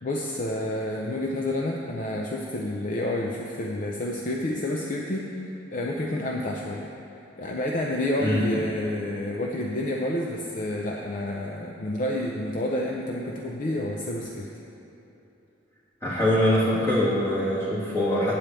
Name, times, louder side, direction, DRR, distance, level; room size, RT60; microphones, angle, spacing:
voice 1, 0.0-6.9 7.4-14.5 16.6-16.9, left 1 dB, 40° left, 0 dB, 0.5 m, -29 dB
voice 2, 16.0-18.3, left 1 dB, 15° left, -8 dB, 2.2 m, -23 dB
8.5 x 5.0 x 7.5 m, 3.0 s
head